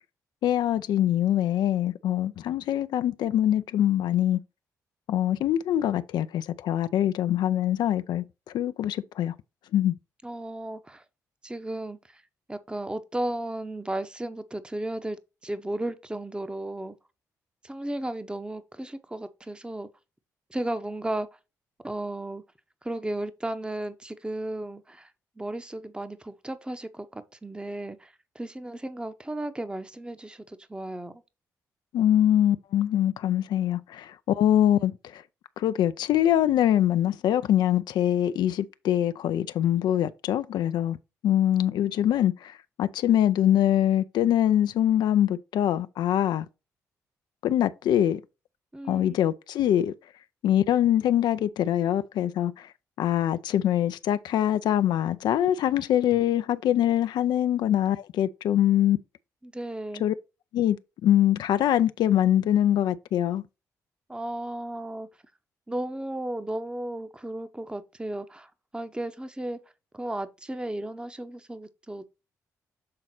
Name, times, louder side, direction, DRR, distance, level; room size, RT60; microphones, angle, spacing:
voice 1, 0.4-4.4 5.1-8.2 8.5-9.3 9.7-9.9 31.9-35.2 35.6-41.0 41.2-46.5 47.4-48.2 48.9-49.9 50.4-52.7 53.0-59.0 60.0-60.1 60.5-60.8 61.0-63.4, left 11 dB, 70° left, 0.4 m, -23 dB
voice 2, 10.2-11.0 11.4-12.2 12.5-17.0 17.6-19.9 20.5-21.3 21.8-22.4 22.8-25.1 25.4-31.1 48.7-49.2 59.4-60.1 64.1-65.1 65.7-69.6 69.9-72.1, right 1 dB, 10° right, 0.9 m, -34 dB
7.6 x 3.9 x 4.3 m
hypercardioid pair, 50°, 8 cm